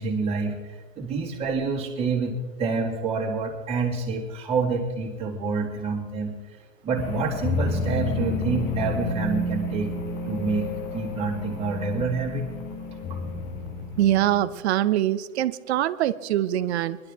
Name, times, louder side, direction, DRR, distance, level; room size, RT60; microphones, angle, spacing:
voice 1, 0.0-6.3 6.8-9.9 10.2-12.4, right 4 dB, 15° right, -3 dB, 2.1 m, -27 dB
sound 1, 6.9-14.6, left 3 dB, 10° left, 0.4 m, -30 dB
voice 2, 14.0-17.0, right 13 dB, 50° right, 15 dB, 0.7 m, -23 dB
21.0 x 11.5 x 3.6 m, 1.3 s
hypercardioid pair, 145°, 42 cm